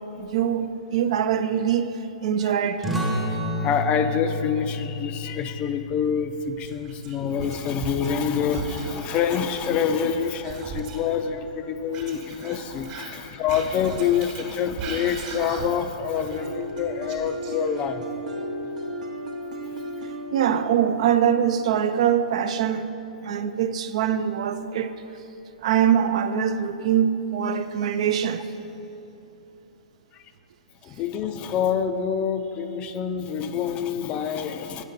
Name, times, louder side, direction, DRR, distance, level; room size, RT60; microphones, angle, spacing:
voice 1, 0.2-1.9 2.2-2.8 20.3-22.9 23.2-25.0 25.6-28.5, right 9 dB, 55° right, 0.4 m, -23 dB
sound 1, 2.8-8.0, left 1 dB, ahead, 0.7 m, -31 dB
voice 2, 3.3-18.1 30.1-30.2 30.8-34.8, left 7 dB, 30° left, 0.4 m, -26 dB
Whispering, 6.6-8.2 8.5-11.2 11.9-15.9 16.2-18.0, right 5 dB, 40° right, 1.1 m, -38 dB
sound 2, 16.3-22.2, equal, 75° right, 0.8 m, -35 dB
8.6 x 5.2 x 4.0 m
figure-of-eight pair, 115°, 4 cm